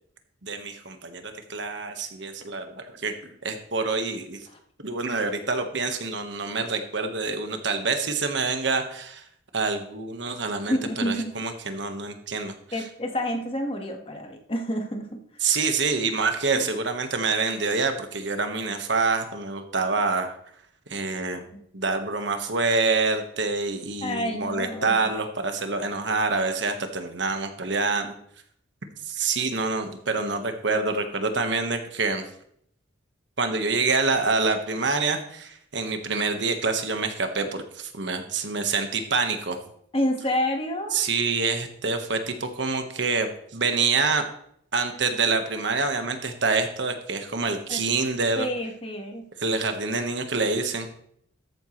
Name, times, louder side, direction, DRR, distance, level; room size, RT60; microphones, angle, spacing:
voice 1, 0.4-4.4 4.8-9.2 9.5-12.5 15.4-20.4 20.9-21.4 21.7-28.1 29.1-32.2 33.4-39.6 40.9-44.2 44.7-48.5 49.4-50.9, right 4 dB, 65° right, 6 dB, 1.4 m, -26 dB
voice 2, 10.7-11.3 12.7-15.5 16.5-16.7 24.0-25.2 39.9-41.1 47.7-47.8 48.4-49.3, left 1 dB, 30° left, 3 dB, 1.6 m, -29 dB
13.5 x 9.2 x 3.2 m, 0.67 s
head